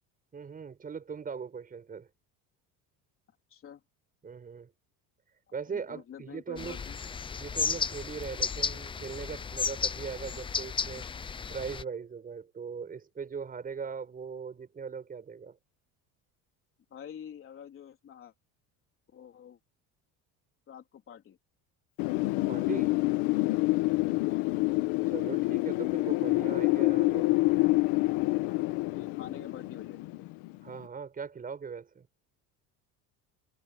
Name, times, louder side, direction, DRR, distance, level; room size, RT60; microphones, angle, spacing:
voice 1, 0.3-2.1 4.2-4.7 5.5-6.8 7.4-11.1 11.5-15.6 22.5-23.0 25.1-27.3 30.6-32.1, right 6 dB, 20° right, 6.7 m, -40 dB
voice 2, 3.5-3.8 5.7-7.0 16.9-18.3 19.1-19.6 20.7-21.4 24.2-24.6 28.5-30.3, left 9 dB, 35° left, 3.6 m, -47 dB
sound 1, 6.6-11.8, left 6 dB, 15° left, 0.5 m, -34 dB
Wind, 22.0-30.7, left 21 dB, 85° left, 1.3 m, -27 dB
cardioid pair, 160°, 37 cm